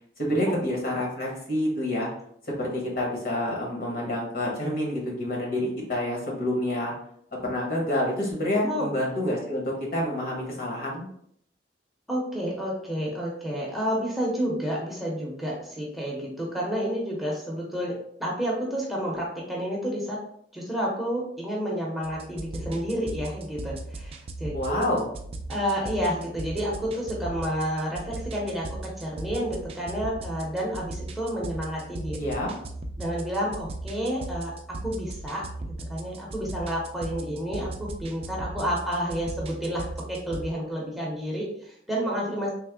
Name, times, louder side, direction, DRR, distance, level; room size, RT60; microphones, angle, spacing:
voice 1, 0.2-2.1 2.6-6.9 7.4-11.1 24.5-25.0 32.2-32.5, left 1 dB, 55° left, -2 dB, 1.1 m, -28 dB
voice 2, 8.5-8.9 12.1-20.2 20.5-24.8 25.5-32.3 33.0-34.5 34.8-42.5, equal, ahead, -4 dB, 0.7 m, -30 dB
sound 1, 22.0-40.4, right 2 dB, 35° right, 0.3 m, -38 dB
3.4 x 2.1 x 3.4 m, 0.67 s
head